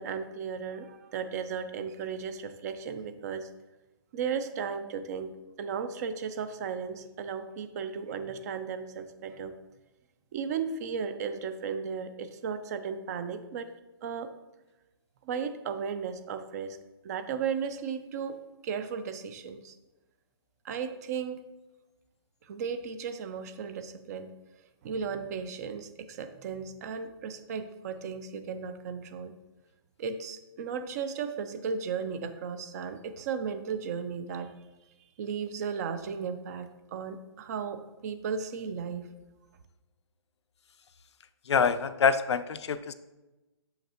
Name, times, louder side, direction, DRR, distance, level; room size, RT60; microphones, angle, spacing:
voice 1, 0.0-3.5 4.1-5.3 5.6-9.5 10.3-13.7 14.0-14.3 15.2-16.8 17.0-19.7 20.6-21.4 22.5-24.3 24.8-29.4 30.0-34.5 35.2-39.1, right 6 dB, 40° right, 11 dB, 0.5 m, -35 dB
voice 2, 41.5-42.9, left 6 dB, 90° left, 12 dB, 0.5 m, -25 dB
6.8 x 5.7 x 2.8 m, 1.0 s
hypercardioid pair, 150°, 14 cm